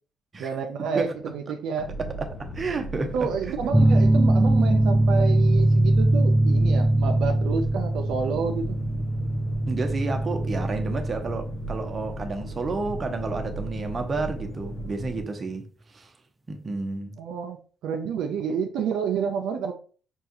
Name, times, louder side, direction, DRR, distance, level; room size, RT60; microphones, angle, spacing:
voice 1, 0.4-1.9 3.0-8.8 17.2-17.6 17.8-19.7, right 6 dB, 80° right, 0.4 m, -29 dB
sound 1, 1.8-15.2, equal, 55° left, 0.7 m, -37 dB
voice 2, 2.0-3.2 3.5-3.8 9.7-16.1 16.5-17.2, right 3 dB, 35° right, 0.8 m, -31 dB
sound 2, 3.7-14.9, right 1 dB, 5° right, 0.3 m, -22 dB
5.4 x 2.3 x 2.7 m
cardioid pair, 85°, 0 cm